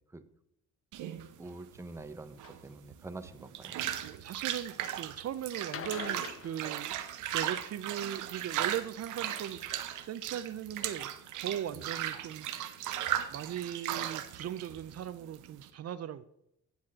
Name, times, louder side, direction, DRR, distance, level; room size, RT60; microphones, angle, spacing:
sound 1, 0.9-15.7, right 11 dB, 85° right, 0.8 m, -37 dB
voice 1, 1.4-3.8 11.7-11.9, right 2 dB, 10° right, 9 dB, 0.7 m, -46 dB
sound 2, 2.4-2.6 3.3-4.0 5.6-7.5 9.1-9.7 10.4-10.5 11.0-11.1 11.5-11.6 11.8-11.9, left 8 dB, 50° left, 0.7 m, -45 dB
voice 2, 4.0-7.0 7.3-9.6 10.1-12.5 13.3-16.2, right 10 dB, 55° right, 14 dB, 0.5 m, -39 dB
9.8 x 4.2 x 7.5 m, 0.78 s
cardioid pair, 90°, 30 cm